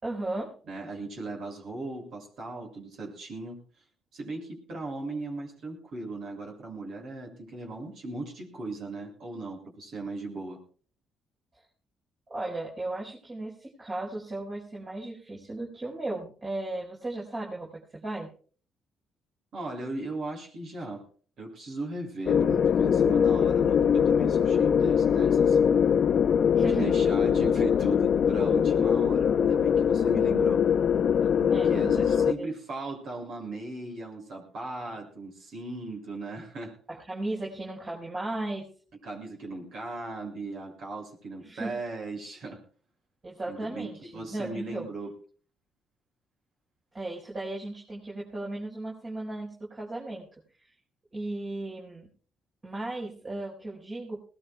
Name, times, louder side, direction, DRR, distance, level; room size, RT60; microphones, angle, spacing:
voice 1, 0.0-0.5 12.3-18.3 26.5-27.0 31.5-32.5 36.9-38.7 41.4-41.8 43.2-44.9 46.9-50.3 50.6-50.7 51.1-52.1 52.6-54.2, right 2 dB, 35° right, -4 dB, 4.9 m, -36 dB
voice 2, 0.7-3.6 4.1-10.6 19.5-21.0 21.4-25.6 26.6-30.6 31.4-36.8 39.0-42.6 43.4-45.1, right 2 dB, 65° right, 1 dB, 6.6 m, -38 dB
sound 1, 22.3-32.3, left 7 dB, 60° left, 0.6 m, -22 dB
21.5 x 18.5 x 2.3 m, 0.42 s
supercardioid pair, 60°, 0 cm